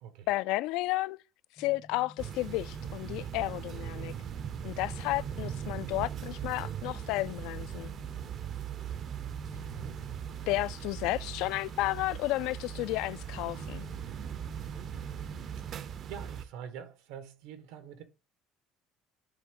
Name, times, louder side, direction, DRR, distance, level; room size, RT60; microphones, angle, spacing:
voice 1, 0.3-1.2 1.6-4.1 4.6-7.9 10.5-13.9, left 18 dB, 75° left, 0.3 m, -32 dB
sound 1, 1.6-16.3, left 3 dB, 15° left, 0.5 m, -51 dB
sound 2, 2.2-16.4, right 9 dB, 40° right, 0.5 m, -40 dB
voice 2, 9.5-10.1 15.6-15.7 16.0-18.0, right 8 dB, 90° right, 1.4 m, -45 dB
9.9 x 3.6 x 3.7 m
cardioid pair, 150°, 0 cm